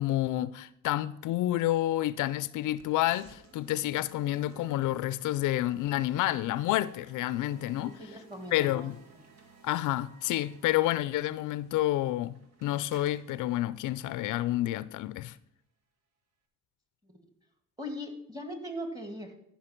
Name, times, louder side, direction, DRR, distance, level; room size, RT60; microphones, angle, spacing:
voice 1, 0.0-8.0 8.5-9.0 9.6-15.4, left 15 dB, 80° left, 0.4 m, -29 dB
sound 1, 2.8-14.8, right 4 dB, 60° right, 1.9 m, -57 dB
voice 2, 7.7-8.9 17.1-17.2 17.8-19.3, equal, 10° right, 2.2 m, -40 dB
13.5 x 5.7 x 4.5 m
cardioid pair, 90°, 30 cm